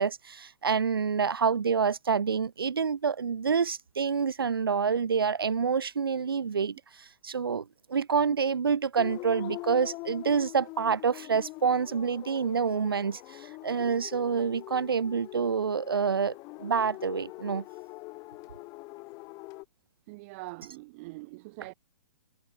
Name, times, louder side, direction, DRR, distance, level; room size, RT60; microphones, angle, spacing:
voice 1, 0.0-6.8 7.2-17.6, right 6 dB, 70° right, 0.7 m, -27 dB
sound 1, 9.0-19.6, left 24 dB, 30° left, 1.9 m, -43 dB
voice 2, 20.1-21.7, right 25 dB, 35° right, 2.0 m, -43 dB
figure-of-eight pair, 120°, 12 cm